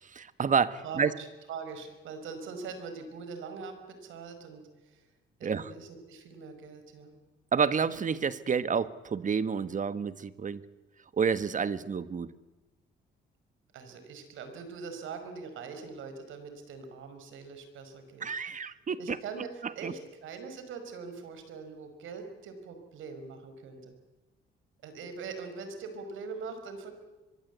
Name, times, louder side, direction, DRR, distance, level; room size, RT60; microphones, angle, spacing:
voice 1, 0.0-1.1 5.4-5.7 7.5-10.6 11.1-12.3 18.2-19.2 19.6-19.9, right 6 dB, 40° right, 14 dB, 1.4 m, -29 dB
voice 2, 0.8-5.1 5.4-7.2 13.7-18.3 19.0-23.9 24.8-26.9, right 5 dB, 80° right, 7 dB, 5.1 m, -42 dB
24.0 x 22.5 x 8.3 m, 1.1 s
cardioid pair, 90°, 20 cm